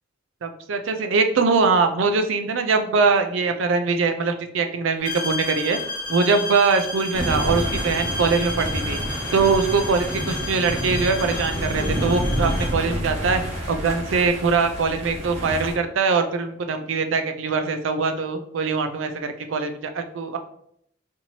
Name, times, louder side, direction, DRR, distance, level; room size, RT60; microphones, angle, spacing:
voice 1, 0.4-5.8 6.1-9.0 9.3-13.4 13.7-20.4, right 4 dB, 70° right, 7 dB, 0.4 m, -22 dB
sound 1, 5.1-12.8, left 2 dB, 45° left, 0.7 m, -32 dB
sound 2, 7.1-15.7, equal, 30° right, 1.3 m, -28 dB
4.3 x 2.9 x 2.8 m, 0.70 s
head